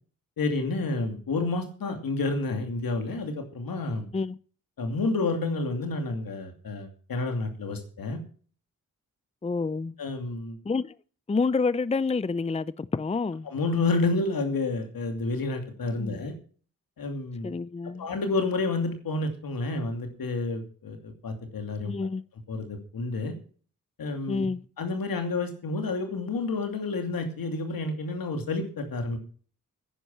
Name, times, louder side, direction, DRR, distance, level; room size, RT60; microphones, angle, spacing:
voice 1, 0.4-4.1 4.8-8.2 10.0-10.6 13.4-16.3 17.0-17.5 18.0-21.9 22.5-23.3 24.0-24.4 24.8-29.2, left 3 dB, 80° left, 2.7 m, -29 dB
voice 2, 9.4-9.9 10.6-10.9 11.3-13.5 16.0-16.2 17.4-18.1 21.8-22.2 24.3-24.6, left 4 dB, 20° left, 0.5 m, -28 dB
10.0 x 10.0 x 7.5 m
cardioid pair, 45°, 34 cm